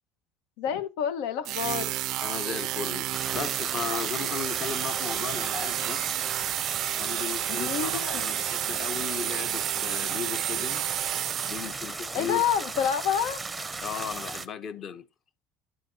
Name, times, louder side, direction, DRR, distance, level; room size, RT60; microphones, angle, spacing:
voice 1, 0.6-1.9 7.5-8.3 12.1-13.4, left 8 dB, 80° left, 1.3 m, -28 dB
sound 1, 1.4-12.0, right 15 dB, 45° right, 0.4 m, -31 dB
voice 2, 2.2-6.0 7.0-10.9 11.5-12.4 13.8-15.0, left 7 dB, 35° left, 0.9 m, -36 dB
sound 2, 3.1-14.5, right 3 dB, 10° right, 0.7 m, -36 dB
10.0 x 7.5 x 2.8 m
cardioid pair, 175°, 0 cm